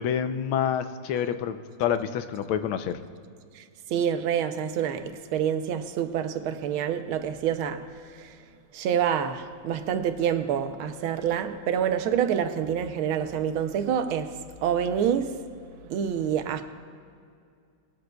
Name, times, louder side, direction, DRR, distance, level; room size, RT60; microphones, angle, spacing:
voice 1, 0.0-3.0, left 9 dB, 85° left, 1.5 m, -28 dB
voice 2, 3.9-8.4 8.7-14.3 14.6-15.4 15.8-16.6, right 8 dB, 90° right, 1.5 m, -27 dB
20.0 x 13.0 x 2.3 m
omnidirectional pair, 2.2 m